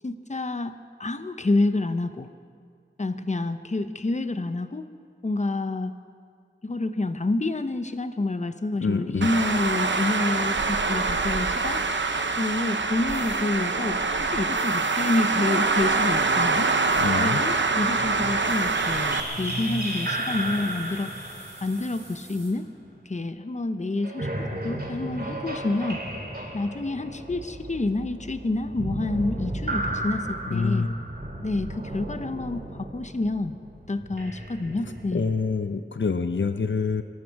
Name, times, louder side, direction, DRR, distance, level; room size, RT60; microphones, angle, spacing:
voice 1, 0.0-2.3 3.0-4.9 5.2-6.0 6.6-11.8 12.4-16.7 17.2-21.3 21.6-22.7 23.1-26.0 26.5-30.9 31.4-33.6 33.9-35.3, left 2 dB, 35° left, 10 dB, 0.8 m, -28 dB
voice 2, 8.8-9.3 17.0-17.4 30.5-31.0 35.1-37.0, left 5 dB, 70° left, 9 dB, 0.6 m, -26 dB
Traffic noise roadway noise, 9.2-19.2, right 3 dB, 70° right, 0.9 m, -25 dB
sound 1, 13.1-13.4 14.5-15.2 16.8-17.1 18.4-22.5, right 1 dB, 35° right, 5.0 m, -49 dB
sound 2, 17.9-23.0 24.0-35.5, right 1 dB, 55° right, 2.7 m, -34 dB
23.0 x 12.5 x 4.7 m, 2.2 s
wide cardioid pair, 55°, 20 cm